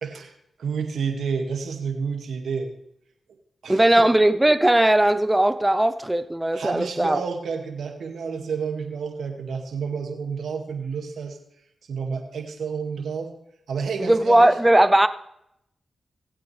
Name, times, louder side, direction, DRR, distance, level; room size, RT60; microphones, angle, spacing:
voice 1, 0.0-2.7 3.6-4.0 6.5-11.4 11.9-13.3 13.7-14.5, right 5 dB, 75° right, 2.1 m, -30 dB
voice 2, 3.7-7.2 14.0-15.1, right 1 dB, 15° right, 0.8 m, -18 dB
19.5 x 8.5 x 3.4 m
supercardioid pair, 40°, 0 cm